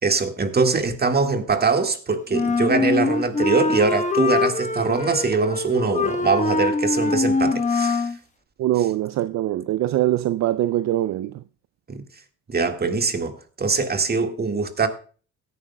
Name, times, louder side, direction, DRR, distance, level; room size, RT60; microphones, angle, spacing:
voice 1, 0.0-8.1 11.9-12.0 12.5-14.9, right 4 dB, 30° right, 1.8 m, -22 dB
Wind instrument woodwind instrument, 2.3-8.2, left 3 dB, 25° left, 1.1 m, -23 dB
voice 2, 8.6-11.4, right 13 dB, 65° right, 0.5 m, -23 dB
17.0 x 9.9 x 2.2 m
cardioid pair, 90°, 30 cm